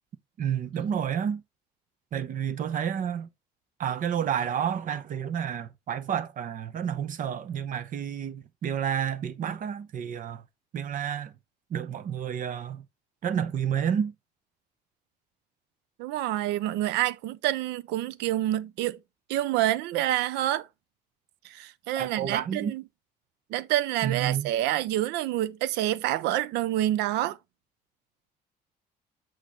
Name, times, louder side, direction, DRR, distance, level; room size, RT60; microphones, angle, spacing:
voice 1, 0.4-1.4 2.1-3.3 3.8-10.4 10.7-11.3 11.7-12.9 13.2-14.1 22.0-22.7 24.0-24.5, right 8 dB, 50° right, 0.9 m, -30 dB
voice 2, 16.0-19.0 19.3-20.7 21.4-22.8 23.5-27.4, right 14 dB, 90° right, 0.6 m, -27 dB
8.2 x 3.1 x 3.9 m
cardioid pair, 110°, 17 cm